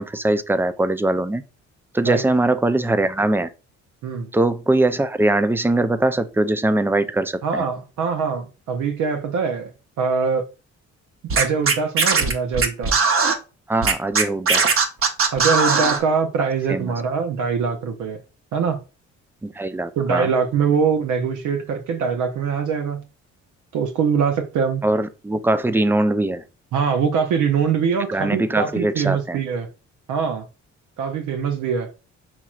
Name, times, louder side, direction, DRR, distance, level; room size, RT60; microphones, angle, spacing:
voice 1, 0.0-1.4 1.9-3.5 4.3-7.6 13.7-14.7 16.7-16.9 19.4-20.3 24.8-26.4 28.1-29.4, right 2 dB, 10° right, 0.3 m, -21 dB
voice 2, 7.4-9.7 10.0-10.5 11.3-13.0 15.3-18.2 18.5-18.8 20.0-23.0 23.7-24.8 26.7-29.7 30.1-30.5 31.0-31.9, right 6 dB, 80° right, 0.7 m, -23 dB
Scratching (performance technique), 11.3-13.3 13.8-16.0, right 4 dB, 45° right, 0.8 m, -18 dB
5.8 x 3.0 x 2.4 m
cardioid pair, 90°, 30 cm